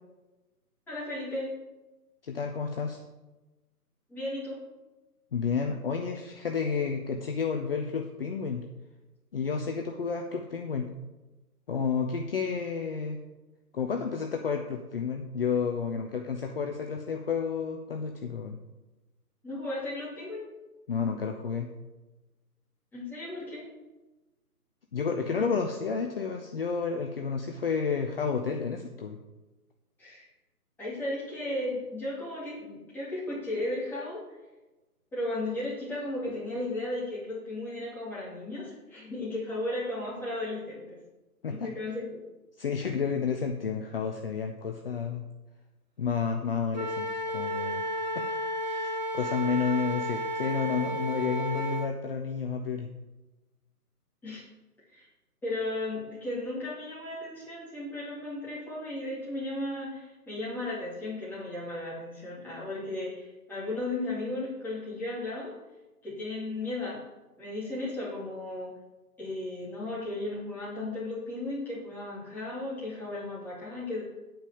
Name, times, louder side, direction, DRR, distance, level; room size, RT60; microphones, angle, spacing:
voice 1, 0.9-1.5 4.1-4.6 19.4-20.5 22.9-23.6 30.0-30.3 30.8-34.2 35.1-41.0 41.5-42.2 54.2-54.4 54.9-55.1 55.4-65.5 66.0-67.0 67.4-68.7 69.2-74.0, left 2 dB, 5° left, -8 dB, 2.5 m, -35 dB
voice 2, 2.2-3.0 5.3-8.6 9.3-10.9 11.7-13.2 13.7-18.6 20.9-21.7 24.9-29.2 41.4-41.7 42.6-45.3 46.0-47.8 48.1-48.2 48.6-52.9, left 5 dB, 40° left, 3 dB, 0.8 m, -31 dB
Wind instrument woodwind instrument, 46.7-51.9, equal, 30° right, 0.5 m, -32 dB
8.9 x 5.2 x 7.1 m, 1.1 s
figure-of-eight pair, 150°, 47 cm